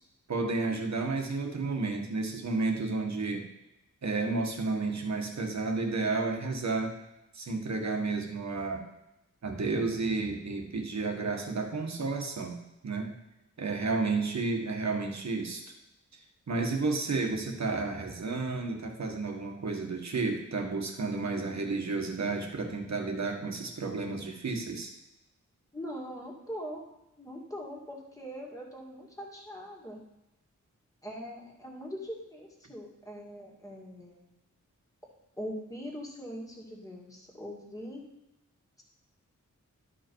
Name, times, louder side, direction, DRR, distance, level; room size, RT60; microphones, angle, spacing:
voice 1, 0.3-3.5 4.0-6.9 7.3-8.8 9.4-12.6 12.8-13.2 13.6-15.7 16.1-16.2 16.5-24.9, right 3 dB, 60° right, 3 dB, 1.5 m, -31 dB
voice 2, 25.7-26.8 27.2-30.0 31.0-34.2 35.4-38.1, equal, 10° left, -2 dB, 2.0 m, -41 dB
12.0 x 5.2 x 4.6 m, 0.93 s
wide cardioid pair, 140°, 31 cm